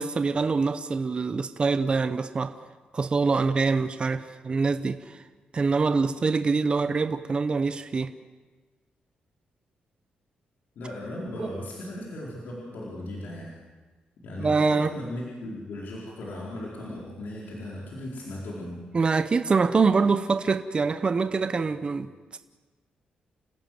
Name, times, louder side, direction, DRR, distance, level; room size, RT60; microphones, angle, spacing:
voice 1, 0.0-2.5 2.9-5.2 5.5-8.1 11.4-11.5 14.4-14.9 18.9-22.4, right 4 dB, 35° right, 10 dB, 0.8 m, -25 dB
voice 2, 10.8-13.5 14.2-18.8, left 1 dB, 75° left, -4 dB, 4.5 m, -37 dB
29.0 x 16.0 x 7.8 m, 1.3 s
wide cardioid pair, 135°, 3 cm